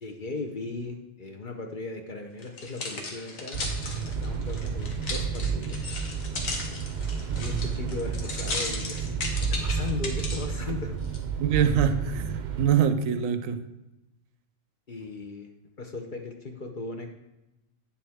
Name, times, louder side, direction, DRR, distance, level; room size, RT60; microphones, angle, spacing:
voice 1, 0.0-3.6 3.9-5.8 7.4-11.0 14.9-15.5 15.8-17.1, left 3 dB, 45° left, 3 dB, 0.8 m, -37 dB
sound 1, 2.4-10.5 11.0-11.2, left 3 dB, 80° left, 1.5 m, -35 dB
sound 2, 3.5-12.7, right 6 dB, 60° right, 0.4 m, -31 dB
voice 2, 11.4-13.6, right 8 dB, 80° right, 10 dB, 1.0 m, -24 dB
8.8 x 7.0 x 3.5 m, 0.94 s
omnidirectional pair, 1.4 m